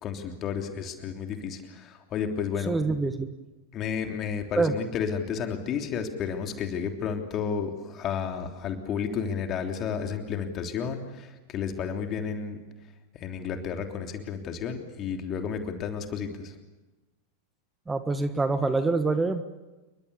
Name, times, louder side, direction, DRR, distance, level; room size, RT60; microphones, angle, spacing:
voice 1, 0.0-2.7 3.7-12.6 13.1-16.5, left 7 dB, 30° left, 5 dB, 3.2 m, -32 dB
voice 2, 2.6-3.3 4.5-4.7 17.9-19.4, right 3 dB, 10° right, 10 dB, 1.5 m, -25 dB
28.5 x 23.5 x 7.1 m, 1.1 s
figure-of-eight pair, 90°, 0 cm